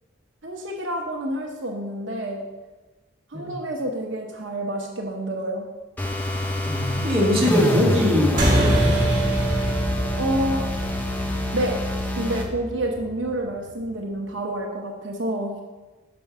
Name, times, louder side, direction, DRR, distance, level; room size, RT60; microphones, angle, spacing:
voice 1, 0.4-2.4 3.3-5.6 10.1-10.6 11.5-11.8 12.2-15.5, right 1 dB, 80° right, 1 dB, 0.9 m, -28 dB
sound 1, 6.0-12.5, left 1 dB, 10° left, 0.5 m, -27 dB
voice 2, 6.7-8.9, left 1 dB, 30° right, -4 dB, 1.6 m, -22 dB
sound 2, 8.4-13.2, right 1 dB, 45° right, 1.5 m, -24 dB
5.4 x 5.3 x 5.9 m, 1.2 s
head